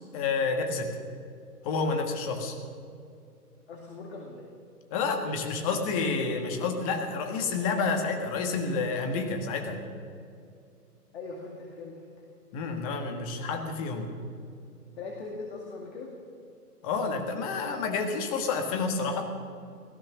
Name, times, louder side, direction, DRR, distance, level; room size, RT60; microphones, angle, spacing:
voice 1, 0.1-1.0 1.6-2.6 4.9-9.8 12.5-14.1 16.8-19.3, left 4 dB, 20° left, 5 dB, 1.5 m, -29 dB
voice 2, 3.7-4.5 11.1-12.1 15.0-16.1, left 3 dB, 40° left, 0 dB, 2.2 m, -40 dB
16.5 x 13.5 x 6.1 m, 2.4 s
hypercardioid pair, 145°, 48 cm